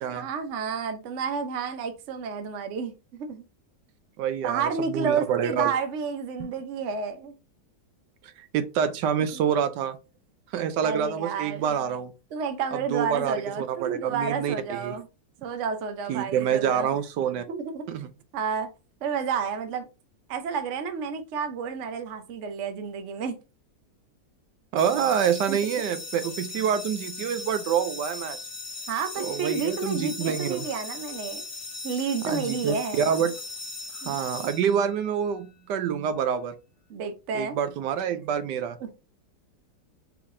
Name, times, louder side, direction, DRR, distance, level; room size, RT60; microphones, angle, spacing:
voice 1, 0.1-3.4 4.4-7.3 9.2-9.6 10.8-11.7 12.3-15.1 15.4-17.0 17.5-17.8 18.3-18.7 19.0-19.9 20.3-23.4 25.5-25.6 28.9-31.4 31.8-33.1 34.0-34.2 36.9-37.6 38.8-38.9, right 6 dB, 55° right, 0.9 m, -31 dB
voice 2, 4.2-5.7 6.4-6.5 8.4-10.0 10.5-12.1 12.9-15.0 16.1-17.4 17.9-18.1 24.7-28.4 29.2-30.7 32.2-33.3 34.0-36.5 37.3-38.8, right 8 dB, 80° right, 1.2 m, -27 dB
sound 1, 24.8-35.2, left 3 dB, 60° left, 0.3 m, -38 dB
4.6 x 3.5 x 2.6 m
omnidirectional pair, 1.9 m